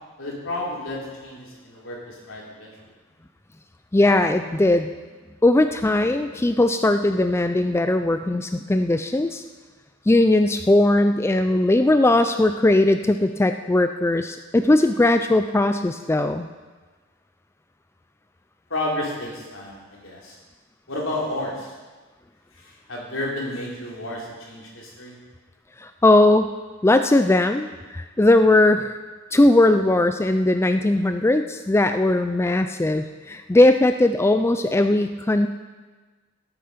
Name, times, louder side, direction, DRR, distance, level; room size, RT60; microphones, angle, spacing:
voice 1, 0.2-2.7 18.7-20.4 20.9-21.7 22.5-25.2, left 1 dB, 70° left, -3 dB, 3.9 m, -31 dB
voice 2, 3.9-4.9 5.4-9.4 10.1-16.5 25.8-26.5 26.8-29.0 29.3-35.5, left 2 dB, 15° left, 8 dB, 0.4 m, -19 dB
17.5 x 8.5 x 5.7 m, 1.3 s
head